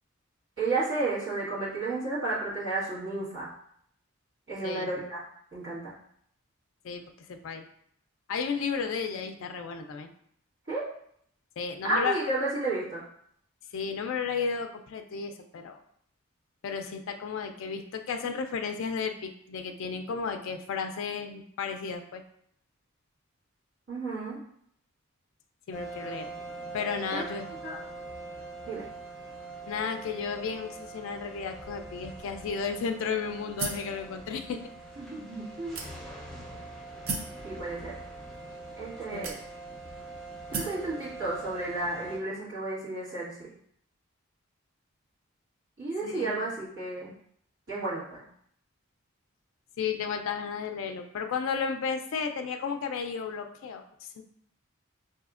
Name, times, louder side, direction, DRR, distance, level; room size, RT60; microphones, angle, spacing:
voice 1, 0.6-3.5 4.5-5.2 5.5-5.9 10.7-10.9 11.9-13.0 23.9-24.4 27.1-27.2 27.6-27.8 28.7-28.8 35.0-35.8 37.4-37.9 38.8-39.3 40.5-43.5 45.8-47.1 47.7-48.2, right 2 dB, 55° right, -10 dB, 1.5 m, -32 dB
voice 2, 6.8-7.6 8.3-10.1 11.6-12.2 13.7-15.8 16.6-22.2 25.7-26.3 26.7-27.5 29.7-34.6 39.1-39.3 46.0-46.4 49.8-54.2, left 6 dB, 65° left, 5 dB, 0.3 m, -33 dB
sound 1, 25.7-42.2, right 2 dB, ahead, 0.6 m, -43 dB
sound 2, 33.6-33.9 34.7-34.8 35.8-36.3 37.1-37.4 38.3-38.4 39.2-39.8 40.5-40.8, right 4 dB, 70° right, 0.6 m, -34 dB
4.8 x 2.7 x 2.4 m, 0.67 s
head